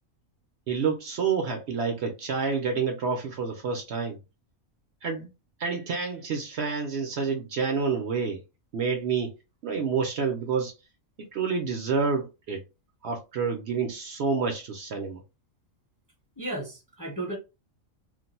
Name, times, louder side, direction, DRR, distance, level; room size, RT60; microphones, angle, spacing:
voice 1, 0.7-4.2 5.0-5.3 5.6-8.4 8.7-9.3 9.6-10.7 11.2-12.6 13.0-15.2, right 5 dB, 60° right, 0.8 m, -28 dB
voice 2, 16.4-17.4, right 2 dB, 20° left, 0.6 m, -34 dB
2.5 x 2.2 x 4.0 m
omnidirectional pair, 1.4 m